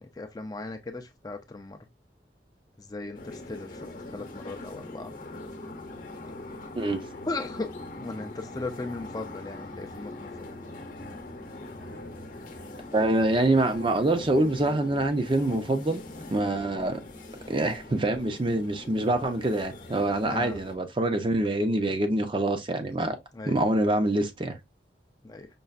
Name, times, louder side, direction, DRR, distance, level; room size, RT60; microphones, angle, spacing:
voice 1, 0.0-1.8 2.8-5.1 7.2-7.7 8.0-10.3 20.2-20.6 23.3-23.6 25.2-25.5, left 2 dB, 20° left, 0.4 m, -37 dB
sound 1, 3.1-20.8, left 2 dB, 50° left, 0.8 m, -42 dB
voice 2, 12.9-16.0 16.3-17.0 17.5-23.2 23.5-24.6, right 1 dB, 30° right, 0.5 m, -25 dB
5.3 x 2.4 x 2.3 m
head